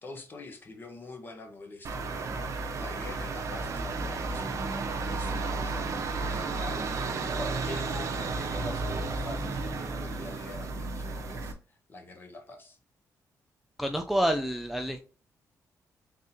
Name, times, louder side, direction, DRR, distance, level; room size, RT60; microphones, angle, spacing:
voice 1, 0.0-7.1 7.4-12.8, left 2 dB, 35° left, 1.0 m, -45 dB
sound 1, 1.8-11.5, right 3 dB, 55° right, 0.7 m, -33 dB
voice 2, 13.8-15.0, equal, ahead, 0.3 m, -28 dB
4.1 x 3.6 x 2.7 m
cardioid pair, 120°, 6 cm